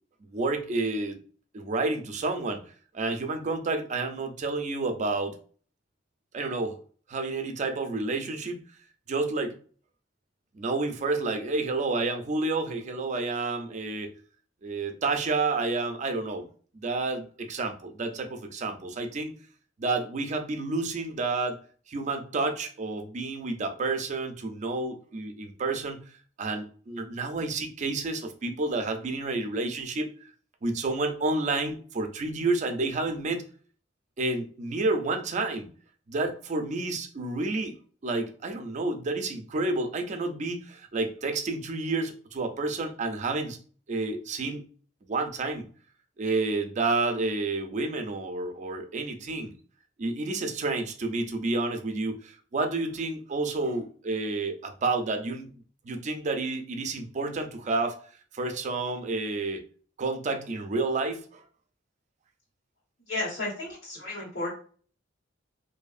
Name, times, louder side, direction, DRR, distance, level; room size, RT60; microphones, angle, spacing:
voice 1, 0.3-1.2 1.5-2.6 2.9-5.3 6.3-6.8 7.1-8.6 9.1-9.5 10.5-14.1 14.6-16.4 16.7-19.3 19.8-21.6 21.9-26.0 26.4-30.1 30.6-33.4 34.2-35.7 36.1-37.7 38.0-43.6 43.9-44.6 45.1-45.7 46.2-49.5 50.0-55.5 55.8-58.0 58.3-59.6 60.0-61.4, right 3 dB, 40° right, 6 dB, 0.4 m, -30 dB
voice 2, 63.1-64.5, left 2 dB, 80° left, -9 dB, 1.4 m, -33 dB
2.6 x 2.4 x 2.4 m, 0.42 s
head